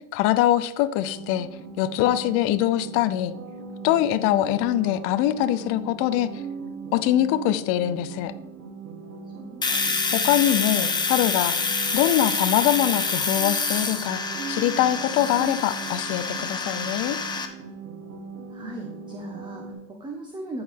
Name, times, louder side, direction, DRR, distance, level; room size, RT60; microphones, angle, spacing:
voice 1, 0.1-1.5 1.8-3.3 3.8-6.3 6.9-8.3 10.1-11.6 11.9-14.2 14.5-17.2, left 13 dB, 35° left, 11 dB, 0.5 m, -23 dB
sound 1, 1.0-19.7, right 5 dB, 85° right, 1.8 m, -39 dB
voice 2, 9.4-10.2 18.5-20.6, right 2 dB, 10° right, 1 dB, 1.0 m, -39 dB
Domestic sounds home sounds, 9.6-17.5, left 4 dB, 10° left, 0.8 m, -27 dB
14.0 x 4.7 x 3.6 m, 0.88 s
hypercardioid pair, 110°, 43 cm